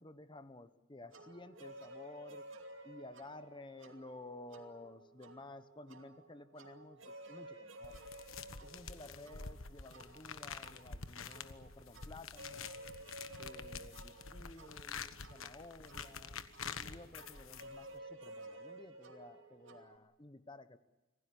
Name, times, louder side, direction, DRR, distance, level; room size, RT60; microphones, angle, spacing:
voice 1, 0.0-2.4 2.8-8.0 8.6-12.8 13.4-16.5 16.8-20.8, left 2 dB, 25° left, 11 dB, 1.0 m, -53 dB
sound 1, 1.1-20.0, right 1 dB, 70° right, 2.6 m, -54 dB
sound 2, 7.8-18.0, left 6 dB, 85° left, 1.3 m, -48 dB
26.0 x 17.5 x 9.8 m, 1.1 s
head